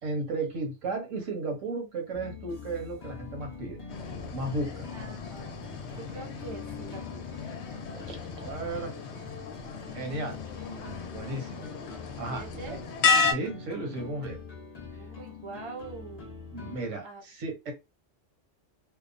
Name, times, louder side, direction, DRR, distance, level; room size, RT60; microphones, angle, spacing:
voice 1, 0.0-3.8 4.3-4.9 7.9-8.9 9.9-10.4 10.7-11.7 12.2-12.4 13.2-14.4 16.5-17.7, right 2 dB, 85° right, 3 dB, 1.2 m, -34 dB
sound 1, 2.1-16.9, left 5 dB, 40° left, 0.7 m, -44 dB
sound 2, 3.9-13.3, left 5 dB, 70° left, 0.8 m, -33 dB
voice 2, 4.9-7.2 12.3-12.8 14.9-16.3 16.6-16.7 17.0-17.2, right 4 dB, 40° right, 3 dB, 0.4 m, -44 dB
2.8 x 2.0 x 2.5 m, 0.24 s
omnidirectional pair, 1.3 m